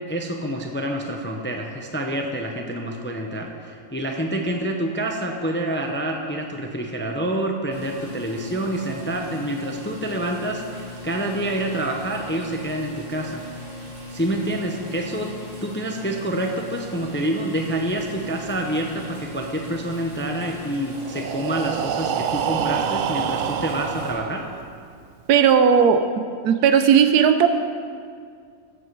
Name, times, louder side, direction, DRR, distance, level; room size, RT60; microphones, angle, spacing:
voice 1, 0.1-13.4 14.1-15.4 15.6-24.5, right 1 dB, 10° left, 2 dB, 0.5 m, -27 dB
sound 1, 7.7-24.1, left 1 dB, 50° right, 4.1 m, -38 dB
Breathing, 21.0-24.9, right 8 dB, 65° right, 0.8 m, -27 dB
voice 2, 25.3-26.1 26.4-27.5, right 7 dB, 90° right, 9 dB, 1.2 m, -16 dB
16.5 x 7.8 x 4.7 m, 2.2 s
omnidirectional pair, 1.6 m